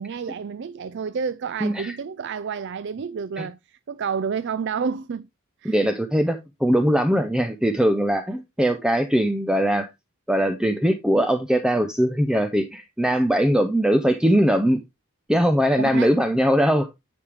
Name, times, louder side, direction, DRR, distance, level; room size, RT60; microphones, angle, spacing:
voice 1, 0.0-5.3 5.6-5.9 15.8-16.1, right 6 dB, 50° right, 0.4 m, -30 dB
voice 2, 1.6-2.0 3.4-3.5 5.6-9.9 10.3-14.8 15.3-16.9, equal, 5° right, 0.6 m, -21 dB
9.9 x 5.1 x 3.4 m
head